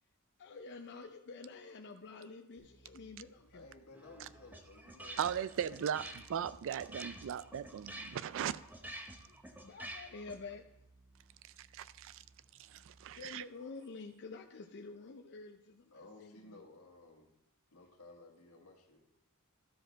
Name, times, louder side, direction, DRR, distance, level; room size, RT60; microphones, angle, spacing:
voice 1, 0.4-3.7 9.3-10.8 13.1-16.6, left 4 dB, 50° left, 0.5 m, -49 dB
sound 1, 2.6-13.2, right 2 dB, 45° right, 2.0 m, -65 dB
voice 2, 3.5-5.9 15.9-17.3 17.7-19.0, left 2 dB, 75° left, 1.6 m, -56 dB
sound 2, 3.9-10.5, right 1 dB, 10° right, 0.8 m, -49 dB
voice 3, 5.2-6.0 6.3-8.6 11.6-12.2 12.7-13.4, right 8 dB, 60° right, 0.3 m, -38 dB
12.5 x 5.0 x 4.5 m
head